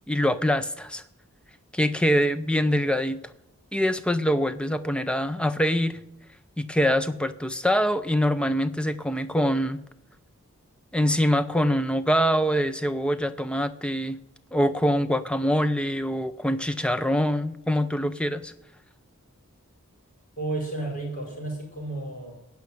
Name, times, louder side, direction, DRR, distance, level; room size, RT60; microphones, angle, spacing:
voice 1, 0.1-1.0 1.7-3.2 3.7-6.0 6.6-9.8 10.9-14.2 14.5-18.5, equal, 5° left, 12 dB, 0.5 m, -24 dB
voice 2, 20.4-22.3, right 2 dB, 35° left, -1 dB, 4.9 m, -32 dB
15.5 x 5.8 x 10.0 m, 0.87 s
head